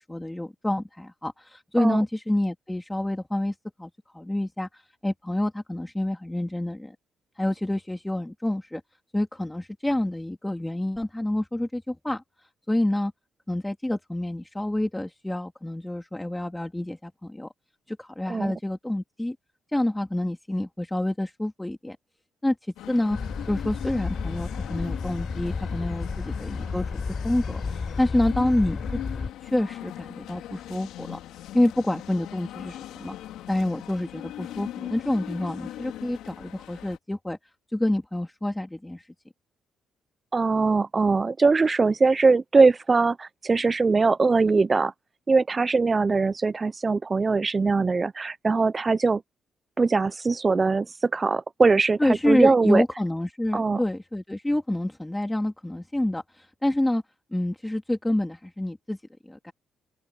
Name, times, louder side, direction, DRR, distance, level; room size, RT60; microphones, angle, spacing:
voice 1, 0.1-6.9 7.4-8.8 9.1-12.2 12.7-13.1 13.5-17.5 17.9-19.4 19.7-22.0 22.4-22.6 22.9-23.2 23.5-29.0 29.4-31.2 31.5-33.1 33.5-37.4 37.7-39.1 52.0-57.0 57.3-59.0 59.3-59.5, left 1 dB, 10° left, 2.5 m, -28 dB
sound 1, 22.8-37.0, left 13 dB, 90° left, 3.6 m, -40 dB
sound 2, 23.1-29.3, left 4 dB, 35° left, 4.5 m, -32 dB
voice 2, 40.3-44.9 45.3-49.2 49.8-52.9 53.5-53.8, right 4 dB, 30° right, 0.6 m, -21 dB
open air
cardioid pair, 90°, 0 cm